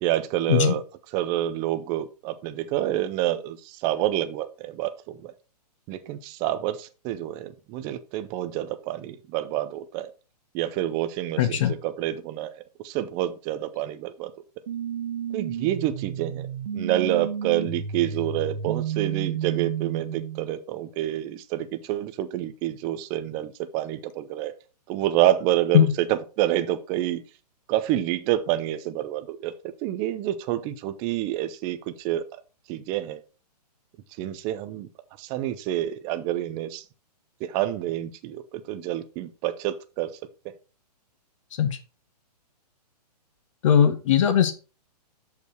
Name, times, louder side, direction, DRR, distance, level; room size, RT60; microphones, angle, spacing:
voice 1, 0.0-0.8 1.1-5.3 5.9-10.1 10.5-12.5 12.8-14.3 15.3-16.5 16.7-24.5 24.9-27.2 27.7-29.5 29.8-32.3 32.7-33.2 34.2-34.9 35.2-36.8 37.4-40.1, right 13 dB, 15° right, 10 dB, 0.4 m, -28 dB
voice 2, 11.4-11.7 25.7-25.9 41.6-41.8 43.6-44.5, left 9 dB, 50° left, 9 dB, 1.2 m, -19 dB
sound 1, 14.7-20.6, right 8 dB, 60° right, 1.2 m, -31 dB
6.5 x 5.3 x 4.4 m, 0.33 s
hypercardioid pair, 155°, 21 cm